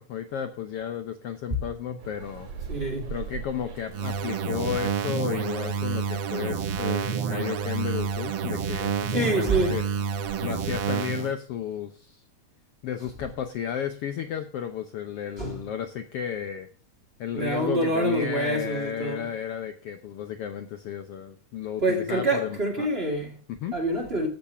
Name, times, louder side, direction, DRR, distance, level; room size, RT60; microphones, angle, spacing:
voice 1, 0.0-2.5 3.1-9.9 10.4-12.2 12.8-16.7 17.2-22.9 23.5-23.8, left 9 dB, 70° left, 1.5 m, -33 dB
sound 1, 2.0-10.3, right 5 dB, 80° right, 3.9 m, -42 dB
voice 2, 2.7-3.1 9.1-9.8 15.4-15.6 17.3-19.2 21.8-23.3 23.7-24.3, right 1 dB, 25° right, 2.0 m, -26 dB
sound 2, 3.9-11.3, right 6 dB, 65° right, 1.2 m, -29 dB
14.0 x 6.7 x 5.6 m
omnidirectional pair, 3.4 m